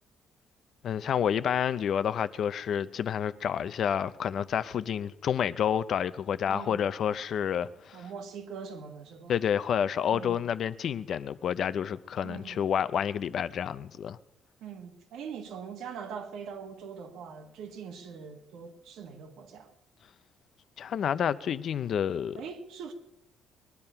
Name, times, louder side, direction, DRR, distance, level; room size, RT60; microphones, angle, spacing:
voice 1, 0.8-8.0 9.3-14.2 20.8-22.4, left 8 dB, 45° left, 0.5 m, -29 dB
voice 2, 6.5-6.8 7.9-9.3 10.1-10.4 12.2-12.6 14.6-19.7 22.4-22.9, right 6 dB, 70° right, 1.6 m, -42 dB
20.0 x 10.5 x 5.6 m
cardioid pair, 170°, 0 cm